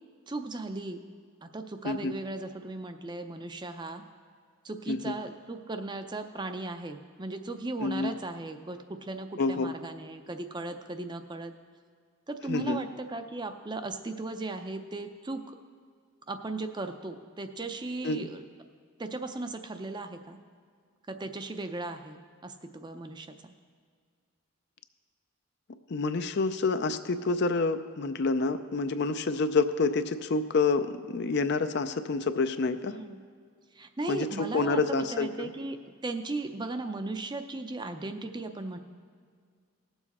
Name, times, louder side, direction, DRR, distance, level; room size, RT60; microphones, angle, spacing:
voice 1, 0.3-1.0 1.4-4.0 4.6-11.5 12.3-15.6 16.3-18.4 19.0-20.4 21.1-23.3 32.9-33.2 33.7-38.8, right 2 dB, 20° right, 7 dB, 0.5 m, -37 dB
voice 2, 7.8-8.1 9.4-9.7 12.5-12.8 18.0-18.3 25.9-33.0 34.1-35.5, left 3 dB, 50° left, 10 dB, 0.5 m, -28 dB
18.5 x 7.2 x 4.2 m, 2.1 s
head